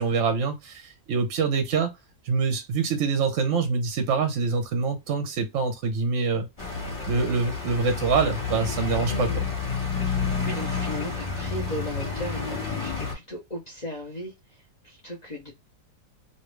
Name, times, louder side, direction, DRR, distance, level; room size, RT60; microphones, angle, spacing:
voice 1, 0.0-1.9 2.2-6.5 7.1-9.4, right 5 dB, 60° right, 0.8 m, -25 dB
sound 1, 6.6-13.1, left 5 dB, 20° left, 1.3 m, -29 dB
voice 2, 9.1-9.4 10.0-15.5, left 1 dB, 40° left, 0.6 m, -37 dB
3.2 x 2.5 x 3.1 m
omnidirectional pair, 1.9 m